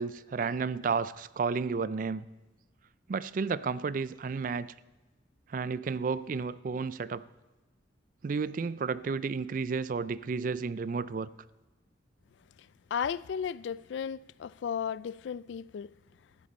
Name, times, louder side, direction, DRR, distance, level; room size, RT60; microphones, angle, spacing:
voice 1, 0.0-2.3 3.1-4.7 5.5-7.2 8.2-11.3, right 5 dB, 45° right, 0.3 m, -32 dB
voice 2, 12.9-15.9, left 7 dB, 75° left, 0.3 m, -34 dB
15.0 x 13.0 x 4.3 m
head